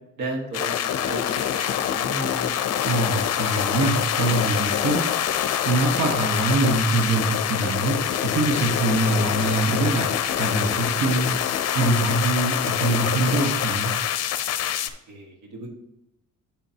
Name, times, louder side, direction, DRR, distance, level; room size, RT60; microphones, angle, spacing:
voice 1, 0.2-2.5 15.1-15.7, right 2 dB, 80° right, 2 dB, 1.6 m, -34 dB
sound 1, 0.5-14.9, left 10 dB, 55° left, 0.6 m, -25 dB
voice 2, 2.8-5.2 5.6-13.9, right 2 dB, 65° right, 1 dB, 1.2 m, -24 dB
7.5 x 7.3 x 2.8 m, 0.88 s
cardioid pair, 90°, 30 cm